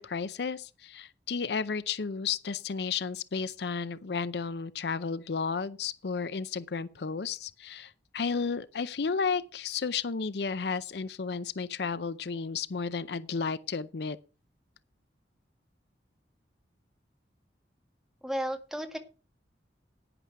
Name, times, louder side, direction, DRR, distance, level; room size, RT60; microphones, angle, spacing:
voice 1, 0.0-14.2, left 5 dB, 65° left, 0.5 m, -33 dB
voice 2, 18.2-19.0, equal, ahead, 1.8 m, -33 dB
11.0 x 10.0 x 4.6 m
head